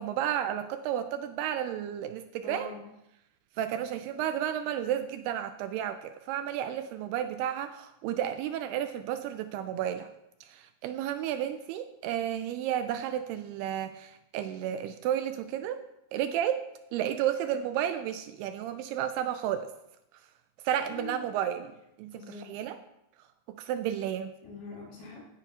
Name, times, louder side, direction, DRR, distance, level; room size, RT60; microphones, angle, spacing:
voice 1, 0.0-2.8 3.6-10.1 10.4-15.8 16.1-16.6 16.9-19.7 20.6-22.8 23.5-24.3, right 10 dB, 85° right, 9 dB, 2.5 m, -32 dB
voice 2, 2.4-2.9 20.9-21.3 22.1-22.7 24.4-25.2, left 4 dB, 70° left, -5 dB, 5.2 m, -44 dB
16.0 x 8.0 x 2.9 m, 0.84 s
omnidirectional pair, 4.7 m